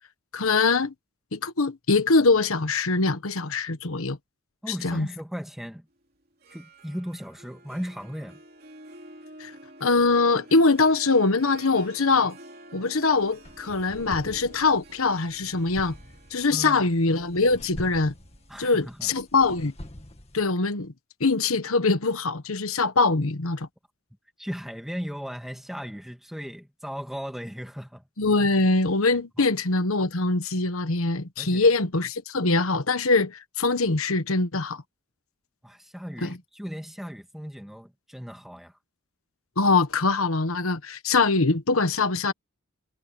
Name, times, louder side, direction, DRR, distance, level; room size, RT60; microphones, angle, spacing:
voice 1, 0.3-0.9 1.3-4.2 4.7-5.1 9.4-9.5 9.8-12.4 12.7-15.9 16.3-18.1 18.6-19.7 20.3-20.9 21.2-23.7 28.2-34.8 36.2-36.4 39.6-42.3, left 3 dB, 80° left, 1.2 m, -23 dB
voice 2, 4.6-5.9 6.5-8.4 16.5-16.9 18.5-19.1 24.4-28.1 29.4-29.5 31.4-31.7 35.6-38.7, equal, ahead, 1.8 m, -37 dB
Harp, 6.3-19.2, right 1 dB, 45° right, 3.0 m, -49 dB
sound 1, 13.1-20.5, left 1 dB, 30° left, 2.0 m, -45 dB
head